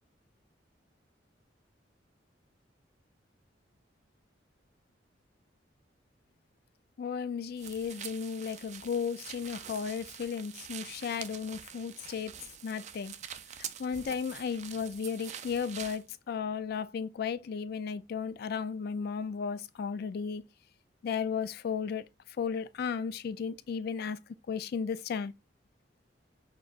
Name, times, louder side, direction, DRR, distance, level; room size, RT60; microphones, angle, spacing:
voice 1, 7.0-12.3 12.6-13.1 13.8-20.4 21.0-22.0 22.4-24.2 24.5-25.3, left 6 dB, 55° left, 0.3 m, -34 dB
sound 1, 7.6-16.0, right 9 dB, 40° right, 0.4 m, -45 dB
6.2 x 2.4 x 2.4 m
head